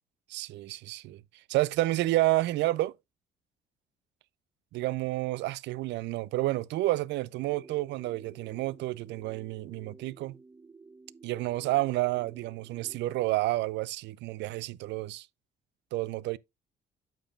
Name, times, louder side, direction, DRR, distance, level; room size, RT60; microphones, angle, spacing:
voice 1, 0.3-1.2 1.5-2.9 4.7-10.4 11.2-15.3 15.9-16.4, right 17 dB, 75° right, 0.4 m, -30 dB
sound 1, 7.3-13.0, right 4 dB, 20° right, 0.6 m, -53 dB
9.1 x 7.0 x 2.4 m
cardioid pair, 100°, 18 cm